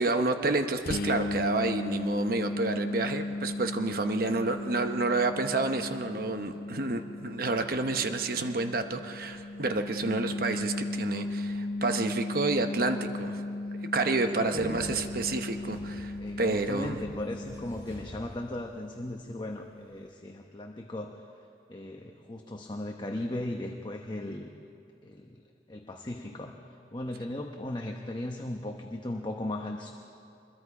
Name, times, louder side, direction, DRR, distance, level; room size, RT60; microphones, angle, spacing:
voice 1, 0.0-13.4 13.9-16.1 16.4-17.0, right 3 dB, 55° right, 7 dB, 1.0 m, -29 dB
sound 1, 0.9-18.4, left 2 dB, 55° left, 0.5 m, -36 dB
voice 2, 14.3-15.0 16.2-21.2 21.7-24.5 25.0-26.6 26.9-29.9, left 1 dB, 25° left, 2 dB, 0.9 m, -37 dB
sound 2, 14.5-19.0, equal, 15° right, 2.9 m, -48 dB
25.5 x 22.0 x 4.9 m, 2.7 s
head